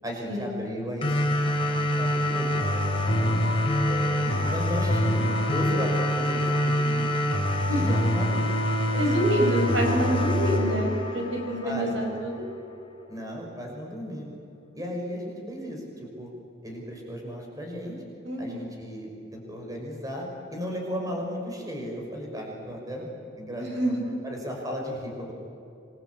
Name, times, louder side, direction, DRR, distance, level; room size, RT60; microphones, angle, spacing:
voice 1, 0.0-3.5 3.9-7.1 7.7-8.5 8.9-9.1 9.5-9.6 11.6-12.0 13.1-14.3 14.7-16.3 16.6-18.0 18.4-23.8 24.0-25.3, equal, 20° right, 0 dB, 6.2 m, -35 dB
sound 1, 1.0-12.0, left 1 dB, 30° left, 4.2 m, -25 dB
voice 2, 8.9-12.3 18.2-18.7 23.6-24.0, right 1 dB, 70° right, 2 dB, 5.7 m, -27 dB
28.0 x 23.5 x 8.6 m, 2.6 s
head